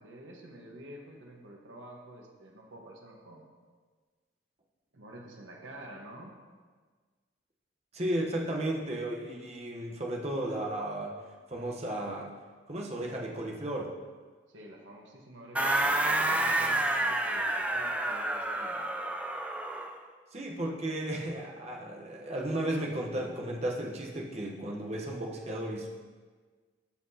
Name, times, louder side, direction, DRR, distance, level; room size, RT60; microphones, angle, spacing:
voice 1, 0.0-3.5 4.9-6.4 14.5-18.9, right 1 dB, 80° right, 0 dB, 1.3 m, -49 dB
voice 2, 7.9-11.2 11.5-12.3 12.7-13.9 20.3-25.9, right 1 dB, 35° right, -1 dB, 0.9 m, -34 dB
sound 1, 15.5-20.0, right 1 dB, 5° right, 0.4 m, -29 dB
13.0 x 5.8 x 2.8 m, 1.5 s
head